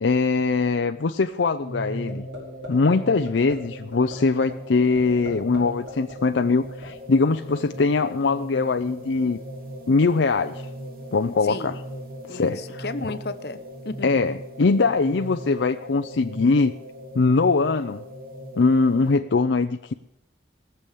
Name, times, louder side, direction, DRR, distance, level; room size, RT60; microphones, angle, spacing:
voice 1, 0.0-2.2 2.7-9.4 9.9-10.6 11.1-11.8 12.3-12.8 14.0-16.7 17.1-18.0 18.6-19.9, left 4 dB, 80° left, 8 dB, 0.5 m, -22 dB
sound 1, 1.6-19.2, equal, 50° right, 2.5 m, -38 dB
sound 2, 2.1-2.4 2.6-3.0 3.3-3.5 3.9-4.1 4.5-4.6 4.9-5.6 5.9-6.9, left 1 dB, 75° right, 6.8 m, -38 dB
voice 2, 11.4-11.8 12.3-14.2, left 3 dB, 55° left, 10 dB, 0.9 m, -34 dB
19.5 x 7.0 x 8.5 m, 0.82 s
head